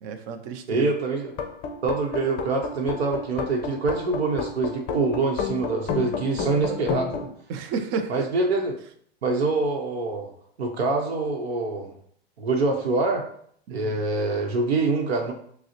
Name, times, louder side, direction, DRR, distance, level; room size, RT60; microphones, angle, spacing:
voice 1, 0.0-0.9 6.5-6.8 7.5-8.2 13.7-14.0, right 5 dB, 35° right, 7 dB, 0.5 m, -32 dB
voice 2, 0.7-1.3 1.8-7.1 8.1-8.7 9.2-10.3 10.6-11.9 12.4-13.2 13.7-15.3, right 3 dB, 75° right, 0 dB, 0.9 m, -25 dB
sound 1, 1.3-7.2, left 5 dB, 30° left, 0.6 m, -30 dB
6.1 x 2.1 x 2.9 m, 0.63 s
hypercardioid pair, 110°, 31 cm